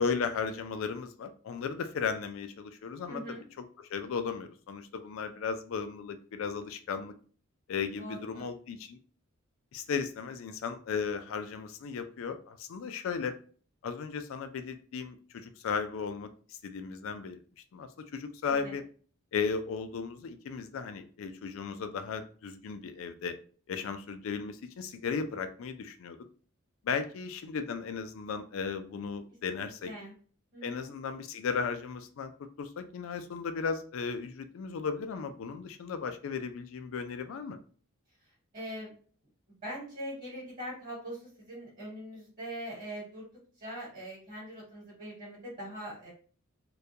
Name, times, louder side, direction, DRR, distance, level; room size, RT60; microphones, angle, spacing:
voice 1, 0.0-3.2 3.9-7.1 7.7-9.0 9.7-13.4 13.8-17.4 17.7-18.8 19.3-23.4 23.7-26.2 26.8-29.9 30.6-32.3 32.6-37.6, left 5 dB, 65° left, 9 dB, 0.3 m, -35 dB
voice 2, 3.1-3.4 8.0-8.4 18.5-18.7 29.5-30.1 30.5-30.9 38.2-38.9 39.6-43.2 43.6-46.1, equal, 40° right, -5 dB, 1.1 m, -42 dB
2.3 x 2.2 x 2.7 m, 0.42 s
head